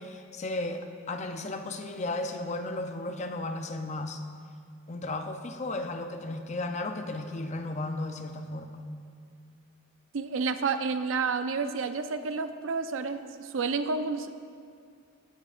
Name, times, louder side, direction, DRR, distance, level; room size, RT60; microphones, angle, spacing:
voice 1, 0.0-4.2 4.9-8.9, left 2 dB, 35° left, 6 dB, 0.5 m, -34 dB
voice 2, 10.1-14.5, right 4 dB, 90° right, 10 dB, 0.5 m, -30 dB
15.0 x 8.5 x 2.5 m, 2.2 s
head